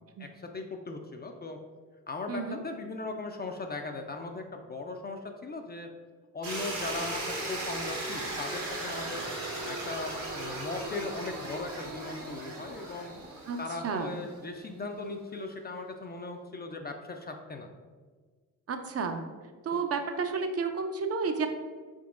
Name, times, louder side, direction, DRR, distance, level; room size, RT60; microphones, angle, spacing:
voice 1, 0.2-1.6 2.1-5.9 6.3-9.3 9.6-13.1 13.6-17.7 19.7-19.8, left 3 dB, 25° left, 4 dB, 0.4 m, -38 dB
voice 2, 2.3-2.6 13.5-13.6 13.8-14.2 18.7-19.2 19.6-21.5, right 5 dB, 40° right, 6 dB, 0.5 m, -31 dB
sound 1, 6.4-14.4, right 2 dB, 80° right, 1.4 m, -37 dB
4.0 x 3.7 x 2.5 m, 1.5 s
hypercardioid pair, 50°, 39 cm